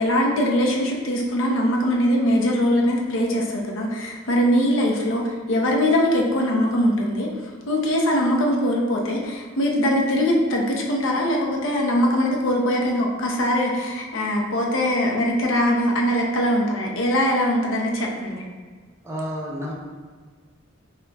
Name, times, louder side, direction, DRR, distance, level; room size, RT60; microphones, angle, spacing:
voice 1, 0.0-7.3 7.7-18.4, equal, 70° left, 0 dB, 0.6 m, -22 dB
voice 2, 19.0-19.7, equal, 15° right, -5 dB, 0.5 m, -30 dB
5.2 x 2.2 x 2.2 m, 1.5 s
head